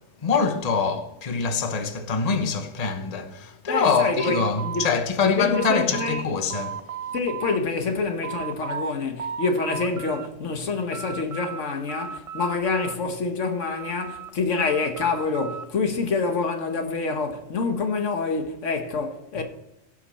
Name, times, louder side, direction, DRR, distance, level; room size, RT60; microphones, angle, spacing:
voice 1, 0.2-6.8 19.4-19.5, left 5 dB, 35° left, 1.0 m, -24 dB
voice 2, 3.7-4.8 5.2-6.2 7.1-19.4, left 4 dB, 85° left, 1.5 m, -27 dB
sound 1, 3.8-6.3 6.5-7.6 8.0-8.9 9.2-10.3 10.6-11.6 11.9-13.2 13.6-15.7, right 8 dB, 50° right, 0.4 m, -35 dB
16.5 x 5.8 x 4.2 m
omnidirectional pair, 1.2 m